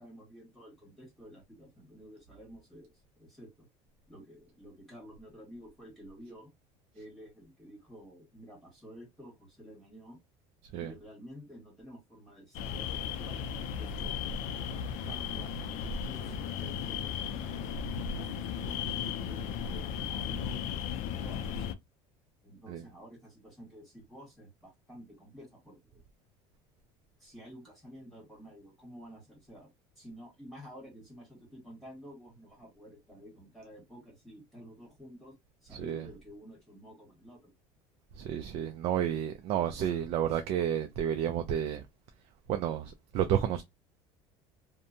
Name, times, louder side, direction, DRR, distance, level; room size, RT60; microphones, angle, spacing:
voice 1, 0.0-3.7 4.1-6.5 6.9-10.2 10.8-21.8 22.4-26.0 27.2-29.7 30.0-35.3 35.6-37.5, equal, ahead, 1.7 m, -51 dB
sound 1, 12.5-21.7, left 7 dB, 60° left, 0.5 m, -35 dB
voice 2, 35.7-36.1 38.1-41.8 42.5-43.6, right 9 dB, 45° right, 0.4 m, -31 dB
2.7 x 2.1 x 2.6 m
cardioid pair, 160°, 14 cm